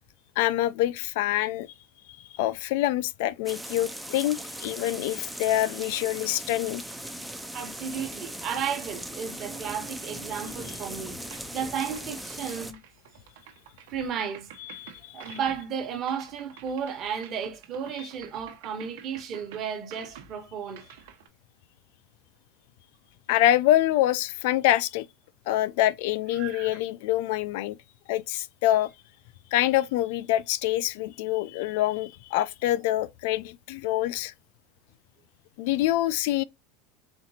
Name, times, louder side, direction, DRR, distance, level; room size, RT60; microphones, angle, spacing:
voice 1, 0.4-1.7 2.1-6.8 14.6-15.4 23.3-25.1 25.5-27.8 28.1-28.9 29.5-34.3 35.6-36.4, left 14 dB, 65° left, 0.3 m, -26 dB
sound 1, 3.5-12.7, right 1 dB, ahead, 0.4 m, -39 dB
voice 2, 7.5-11.2 11.5-12.8 13.9-14.5 15.1-20.9 26.3-26.8, right 7 dB, 35° right, 1.1 m, -33 dB
Motorcycle, 8.5-12.2, right 11 dB, 55° right, 1.1 m, -51 dB
sound 2, 11.3-21.3, right 9 dB, 80° right, 1.0 m, -49 dB
4.3 x 3.8 x 2.8 m
supercardioid pair, 165°, 0 cm